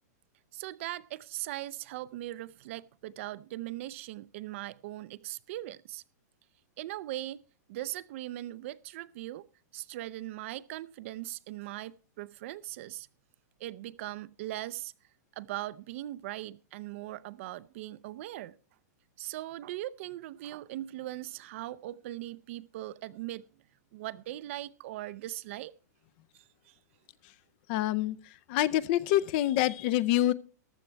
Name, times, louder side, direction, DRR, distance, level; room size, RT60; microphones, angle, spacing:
voice 1, 0.5-6.0 6.8-7.4 7.7-9.4 9.7-13.1 13.6-14.9 15.4-18.5 19.2-23.4 23.9-25.7 26.3-26.8, right 15 dB, 45° right, 0.5 m, -40 dB
voice 2, 27.7-28.2 28.5-30.3, left 14 dB, 35° left, 0.5 m, -26 dB
14.5 x 11.5 x 3.4 m
supercardioid pair, 160°, 9 cm